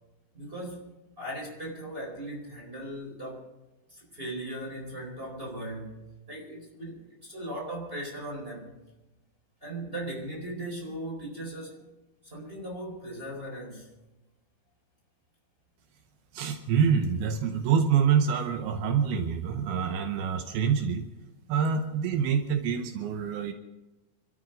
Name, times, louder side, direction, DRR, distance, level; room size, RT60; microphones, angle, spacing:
voice 1, 0.3-3.5 3.9-8.8 9.6-11.9 12.2-13.9, right 1 dB, 15° right, 4.3 m, -38 dB
voice 2, 16.3-21.1 21.5-23.5, right 7 dB, 80° right, 2.9 m, -26 dB
26.5 x 13.0 x 3.9 m
omnidirectional pair, 4.4 m